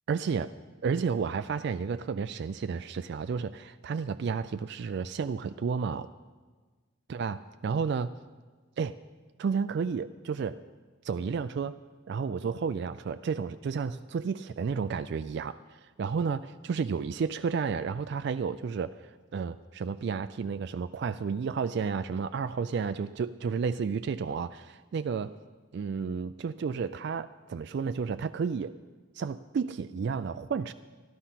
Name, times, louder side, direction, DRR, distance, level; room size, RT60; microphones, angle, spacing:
voice 1, 0.1-0.5 0.8-6.1 7.1-8.1 8.8-9.0 9.4-10.6 11.0-11.8 12.1-25.4 25.7-28.8 29.1-30.7, right 5 dB, 55° right, 12 dB, 0.3 m, -32 dB
13.5 x 12.0 x 5.7 m, 1.4 s
head